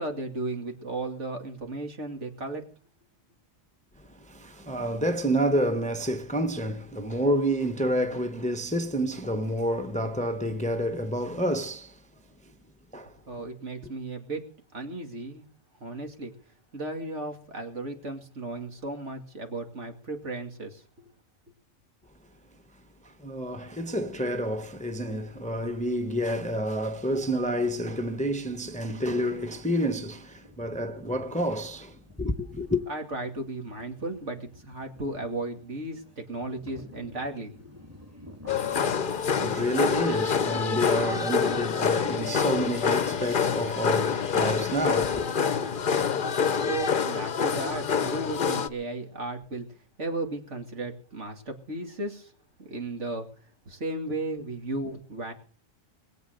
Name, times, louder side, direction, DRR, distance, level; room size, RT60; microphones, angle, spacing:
voice 1, 0.0-2.6 13.3-14.4 14.7-15.5 15.8-16.3 16.7-21.1 32.9-37.8 46.6-49.7 50.0-52.3 52.6-53.3 53.7-55.3, right 2 dB, 65° right, 2.9 m, -35 dB
voice 2, 4.0-12.0 12.9-13.2 23.0-32.8 38.6-45.2, equal, 5° left, 0.9 m, -29 dB
sound 1, 27.8-40.8, equal, 10° right, 1.9 m, -52 dB
sound 2, 38.5-48.7, left 6 dB, 45° left, 0.9 m, -26 dB
21.5 x 8.5 x 6.6 m
omnidirectional pair, 1.3 m